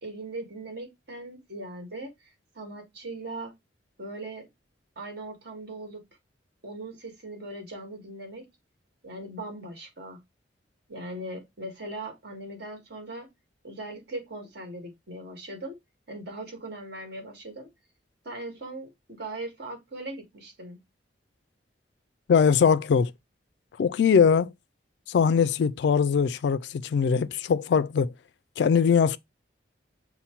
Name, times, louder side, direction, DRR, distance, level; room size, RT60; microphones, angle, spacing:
voice 1, 0.0-2.3 2.5-3.5 4.0-4.5 5.0-6.0 6.6-8.5 9.0-10.2 10.9-13.3 13.6-15.8 16.1-17.7 18.2-20.8, right 2 dB, 60° right, 1.5 m, -39 dB
voice 2, 22.3-23.1 23.8-24.5 25.1-28.1 28.6-29.2, left 6 dB, 60° left, 0.3 m, -21 dB
5.6 x 2.1 x 4.2 m
head